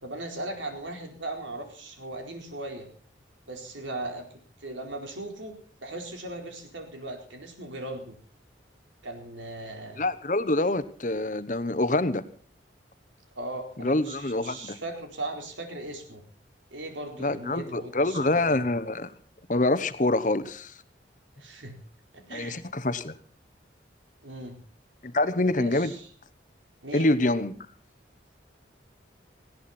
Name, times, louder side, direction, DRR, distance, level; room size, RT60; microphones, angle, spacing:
voice 1, 0.0-2.9 3.5-5.5 5.8-8.2 9.0-10.0 13.3-16.2 16.7-18.6 21.4-21.8 22.1-22.6 24.2-24.6 25.5-26.1 26.8-27.1, right 2 dB, 90° right, 4 dB, 4.4 m, -38 dB
voice 2, 10.0-12.2 13.8-14.8 17.2-19.1 19.5-20.7 22.3-23.1 25.0-25.9 26.9-27.5, left 2 dB, 40° left, 14 dB, 1.1 m, -26 dB
19.0 x 16.5 x 4.3 m, 0.43 s
head